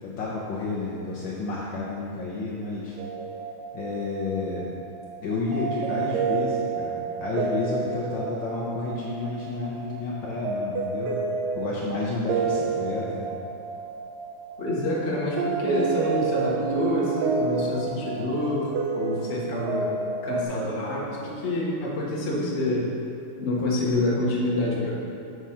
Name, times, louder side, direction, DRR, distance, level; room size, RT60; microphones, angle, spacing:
voice 1, 0.0-3.0 3.7-4.6 5.2-11.2 11.5-13.3, left 3 dB, 65° left, -5 dB, 1.4 m, -31 dB
sound 1, 3.0-20.4, right 5 dB, 70° right, 1.0 m, -30 dB
voice 2, 14.6-19.9 20.2-22.9 23.4-24.9, left 1 dB, 40° left, -5 dB, 1.2 m, -27 dB
6.1 x 4.7 x 5.6 m, 2.5 s
omnidirectional pair, 2.4 m